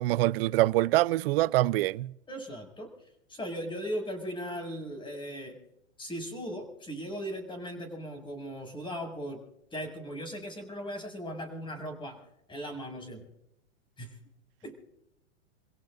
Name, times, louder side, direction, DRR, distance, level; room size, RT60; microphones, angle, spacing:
voice 1, 0.0-2.1, right 17 dB, 50° right, 0.6 m, -25 dB
voice 2, 2.3-5.6 6.0-9.4 9.7-12.2 12.5-13.3 14.0-14.2 14.6-14.8, equal, 15° left, 6.7 m, -38 dB
29.5 x 17.0 x 2.6 m
hypercardioid pair, 135°, 36 cm